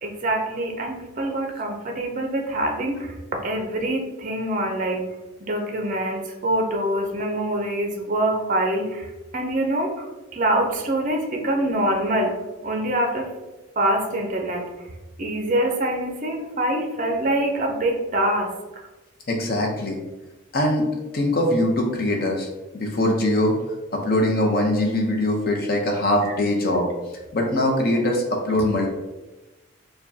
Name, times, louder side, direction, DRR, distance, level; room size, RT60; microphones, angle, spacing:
voice 1, 0.0-3.1 3.4-5.1 5.4-10.0 10.3-12.3 12.6-13.3 13.8-14.7 15.2-18.5 26.3-26.4, right 1 dB, 35° right, 2 dB, 0.5 m, -25 dB
voice 2, 19.3-20.0 20.5-20.9 21.1-22.5 22.7-23.6 23.9-26.9 27.3-28.9, left 1 dB, 45° left, 0 dB, 0.7 m, -22 dB
4.8 x 2.2 x 2.7 m, 1.1 s
head